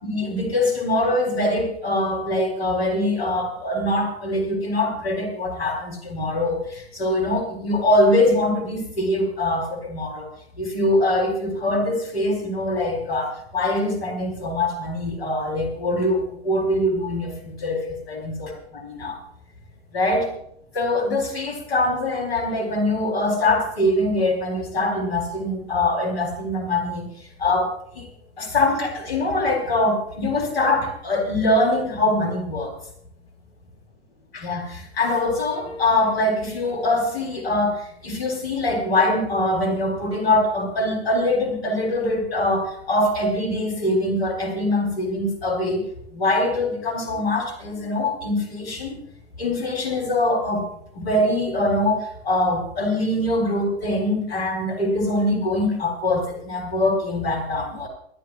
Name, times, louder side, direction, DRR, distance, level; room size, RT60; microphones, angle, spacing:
voice 1, 0.0-10.3 10.6-19.2 19.9-20.3 20.7-27.0 27.4-28.1 28.4-32.7 34.3-45.8 46.1-49.0 49.4-50.7 50.9-57.9, left 1 dB, 70° left, 2 dB, 4.3 m, -23 dB
27.5 x 11.0 x 2.5 m, 0.70 s
figure-of-eight pair, 80°, 32 cm